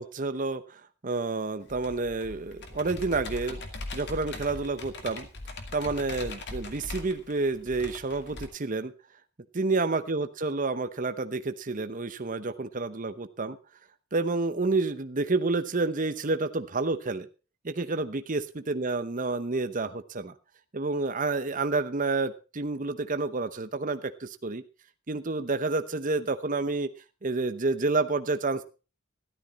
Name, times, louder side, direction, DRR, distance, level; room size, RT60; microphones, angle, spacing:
voice 1, 0.0-3.6 3.9-5.3 5.7-8.9 9.5-13.6 14.1-17.3 17.6-18.4 18.7-20.3 20.7-24.6 25.1-26.9 27.2-28.6, right 3 dB, 40° right, 10 dB, 0.9 m, -29 dB
Computer keyboard, 1.7-8.4, left 2 dB, 55° left, 2.4 m, -40 dB
13.5 x 12.5 x 4.1 m, 0.33 s
head